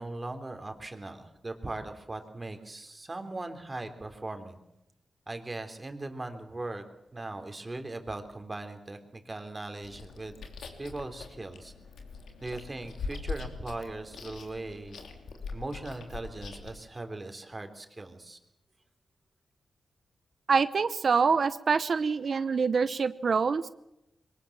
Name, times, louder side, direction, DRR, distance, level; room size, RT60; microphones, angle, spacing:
voice 1, 0.0-4.6 5.3-6.8 7.1-10.4 10.8-11.7 12.4-15.2 15.5-18.4, right 2 dB, 30° right, 6 dB, 3.4 m, -39 dB
Chewing mastication, 9.8-16.8, left 4 dB, 90° left, 3.1 m, -42 dB
voice 2, 20.5-23.6, right 5 dB, 60° right, 13 dB, 0.9 m, -25 dB
22.5 x 19.5 x 7.3 m, 0.86 s
cardioid pair, 70°, 0 cm